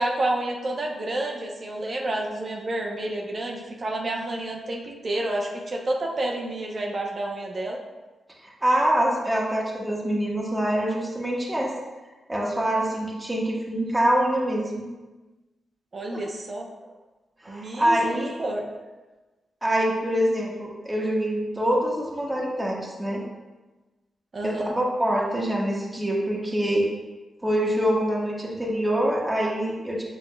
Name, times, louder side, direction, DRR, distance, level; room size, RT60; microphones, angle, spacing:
voice 1, 0.0-7.8 15.9-16.7 17.5-18.7 24.3-24.7, right 1 dB, 50° right, 0 dB, 0.8 m, -29 dB
voice 2, 8.4-11.7 12.3-14.9 16.1-16.2 17.4-18.3 19.6-23.2 24.4-26.9 27.4-30.0, equal, 15° right, -3 dB, 1.0 m, -25 dB
6.4 x 3.6 x 2.3 m, 1.2 s
cardioid pair, 55°, 0 cm